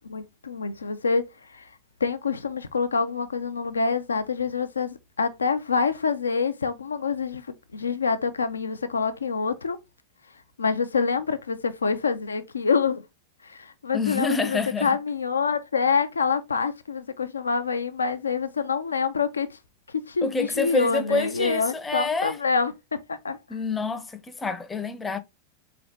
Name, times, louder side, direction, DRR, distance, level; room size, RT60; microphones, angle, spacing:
voice 1, 0.1-1.7 2.0-9.8 10.6-13.0 13.4-19.6 19.9-23.4, left 5 dB, 75° left, 0.4 m, -26 dB
voice 2, 13.9-15.0 20.2-22.4 23.5-25.2, left 3 dB, 15° left, 0.5 m, -27 dB
4.0 x 3.0 x 2.8 m
figure-of-eight pair, 90°, 0 cm